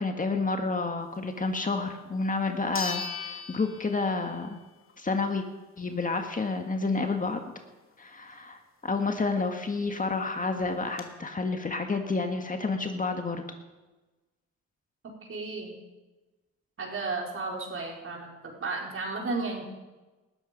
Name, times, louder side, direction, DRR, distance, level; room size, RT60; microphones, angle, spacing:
voice 1, 0.0-4.6 5.0-5.4 5.8-7.4 8.0-13.4, left 3 dB, 25° left, 5 dB, 1.8 m, -30 dB
sound 1, 1.9-2.0 2.7-4.5 4.9-5.0 9.6-9.7 9.9-10.0 10.6-11.0, left 5 dB, 45° left, 2.6 m, -37 dB
voice 2, 15.3-15.7 16.8-19.6, right 3 dB, 45° right, -1 dB, 4.9 m, -33 dB
19.5 x 13.0 x 5.4 m, 1.2 s
cardioid pair, 90°, 30 cm